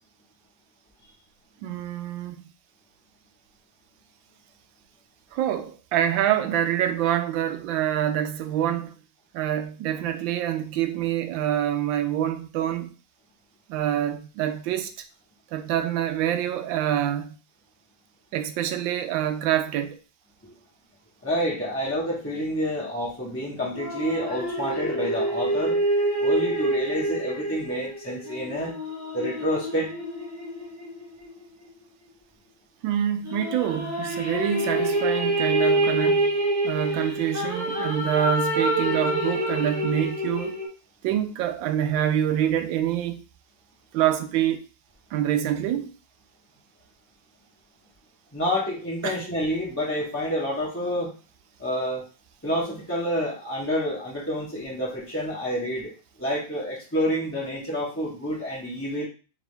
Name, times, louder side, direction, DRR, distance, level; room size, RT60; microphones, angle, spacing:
voice 1, 1.6-2.5 5.3-8.9 9.3-12.9 13.7-14.9 15.5-17.4 18.3-20.0 32.8-36.3 36.6-40.6 41.0-43.2 43.9-44.6 45.1-45.9 49.0-49.2, right 11 dB, 85° right, 1.3 m, -26 dB
voice 2, 21.2-25.8 26.2-28.7 29.1-29.9 48.3-51.1 51.6-52.0 52.4-55.9 56.2-59.1, equal, 10° left, 0.7 m, -28 dB
sound 1, 23.7-31.4 33.2-40.7, right 1 dB, 10° right, 1.1 m, -26 dB
3.6 x 3.6 x 3.3 m
omnidirectional pair, 2.0 m